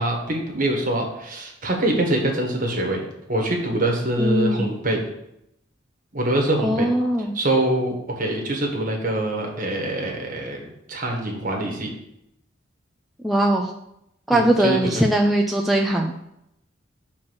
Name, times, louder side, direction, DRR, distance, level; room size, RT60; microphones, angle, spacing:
voice 1, 0.0-5.0 6.1-6.9 7.3-11.9 14.3-14.8, right 1 dB, 45° right, 1 dB, 1.5 m, -24 dB
voice 2, 4.2-4.7 6.6-7.3 13.2-13.7 14.3-16.3, right 1 dB, ahead, -1 dB, 0.4 m, -20 dB
6.0 x 4.3 x 6.3 m, 0.80 s
head